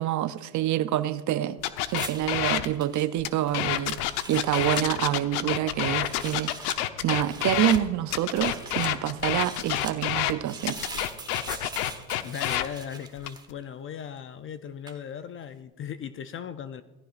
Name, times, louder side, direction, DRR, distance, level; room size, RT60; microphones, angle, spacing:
voice 1, 0.0-1.6 1.9-4.0 4.3-6.5 7.0-10.8, right 13 dB, 40° right, 0.7 m, -27 dB
sound 1, 1.6-2.7 3.2-7.8 8.1-10.3 10.6-12.7 13.2-13.5, left 14 dB, 70° left, 1.0 m, -28 dB
sound 2, 1.9-4.9 5.9-6.8 7.2-7.8 8.3-8.9 9.3-10.0 10.4-13.6 14.9-15.0, right 3 dB, 10° right, 1.2 m, -41 dB
voice 2, 12.2-16.8, left 8 dB, 25° left, 0.5 m, -38 dB
17.5 x 15.0 x 2.5 m
hypercardioid pair, 100°, 49 cm